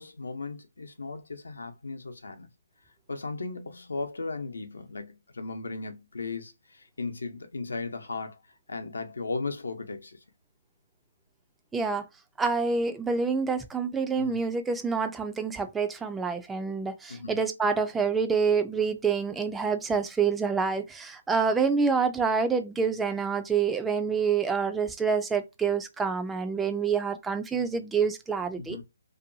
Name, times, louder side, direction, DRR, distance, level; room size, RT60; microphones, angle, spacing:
voice 1, 0.0-2.5 3.1-8.4 8.7-10.2 14.2-14.4 17.1-17.4 28.6-28.8, left 3 dB, 85° left, 0.7 m, -36 dB
voice 2, 11.7-12.1 12.4-28.8, right 5 dB, 5° right, 0.3 m, -27 dB
2.6 x 2.2 x 2.6 m
hypercardioid pair, 155°, 0 cm